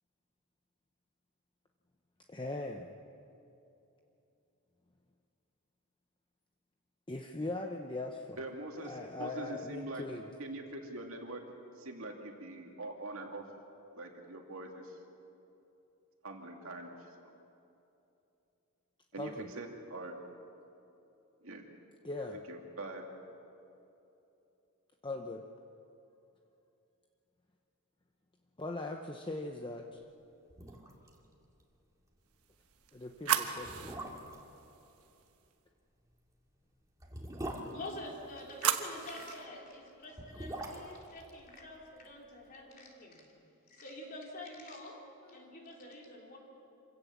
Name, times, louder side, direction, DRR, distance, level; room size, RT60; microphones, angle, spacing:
voice 1, 2.3-3.0 7.1-8.4 8.8-10.3 19.2-19.5 22.0-22.4 25.0-25.4 28.6-30.0 32.9-33.9, left 2 dB, 20° left, 3 dB, 0.8 m, -40 dB
voice 2, 8.4-10.0 10.4-11.4 11.8-13.4 13.9-15.0 16.2-17.3 19.1-20.2 21.4-21.7 22.3-23.0, right 2 dB, 65° right, 2 dB, 2.5 m, -43 dB
sound 1, 30.1-30.2 30.5-31.2 31.4-31.5 31.9-32.1 32.8-32.9 33.6-34.5 36.0-38.7 39.9-42.2 42.4-42.5, right 1 dB, 15° right, 2.3 m, -44 dB
sound 2, 32.4-35.5 37.9-39.5, right 9 dB, 85° right, 1.2 m, -37 dB
voice 3, 37.7-43.3 43.7-46.4, left 1 dB, 40° left, -1 dB, 3.6 m, -47 dB
26.5 x 16.5 x 7.2 m, 2.8 s
head